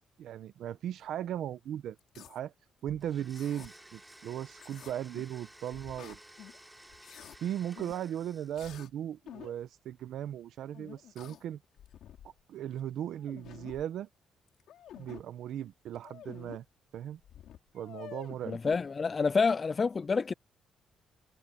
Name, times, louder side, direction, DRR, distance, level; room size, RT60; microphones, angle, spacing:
voice 1, 0.2-2.5 2.8-6.2 7.4-11.6 12.5-14.1 15.0-16.6 16.9-17.2 17.7-18.6, right 10 dB, 75° right, 0.9 m, -37 dB
sound 1, 2.0-2.4 2.9-3.7 4.5-5.4 5.7-6.6 6.8-7.4 7.8-8.0 8.6-8.9 9.3-9.6 10.7-11.5 11.8-12.4 12.8-12.9 13.1-13.8 14.5-15.2 16.0-16.6 17.0-17.1 17.2-18.8, left 11 dB, 75° left, 5.4 m, -49 dB
Domestic sounds home sounds, 3.0-8.8, right 1 dB, 10° right, 3.7 m, -55 dB
voice 2, 18.5-20.3, left 5 dB, 35° left, 0.4 m, -28 dB
cardioid pair, 90°, 0 cm